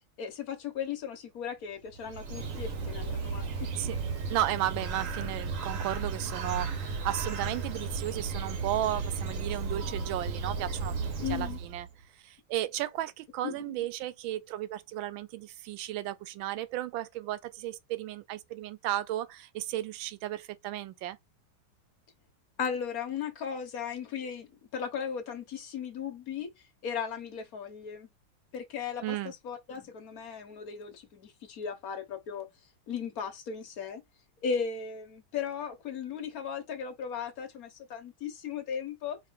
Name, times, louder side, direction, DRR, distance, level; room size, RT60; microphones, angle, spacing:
voice 1, 0.2-3.5 11.2-11.6 13.4-13.5 22.6-26.5 26.8-28.1 28.5-32.5 32.9-34.0 34.4-39.2, left 7 dB, 50° left, 1.3 m, -36 dB
Bird, 1.9-11.9, right 4 dB, 55° right, 0.9 m, -34 dB
voice 2, 4.3-11.0 11.3-11.9 12.2-21.2 29.0-29.3, right 13 dB, 75° right, 1.3 m, -34 dB
4.6 x 2.6 x 3.4 m
omnidirectional pair, 2.3 m